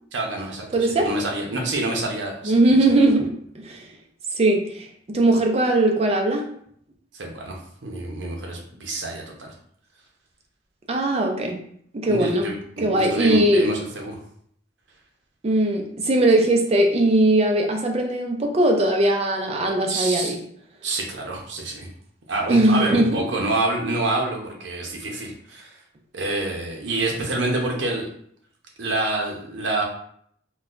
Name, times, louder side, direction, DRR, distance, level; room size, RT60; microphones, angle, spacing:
voice 1, 0.1-0.7 1.0-2.6 7.1-9.5 12.1-14.2 19.9-20.3 20.8-21.9 22.3-25.7 26.1-28.1 28.8-29.8, right 2 dB, 75° right, 1 dB, 0.7 m, -27 dB
voice 2, 0.7-1.1 2.4-3.8 4.3-6.4 10.9-11.6 11.9-12.5 12.8-13.7 15.4-20.4 22.5-23.3, right 1 dB, 35° right, 2 dB, 0.4 m, -20 dB
3.9 x 2.2 x 2.5 m, 0.65 s
head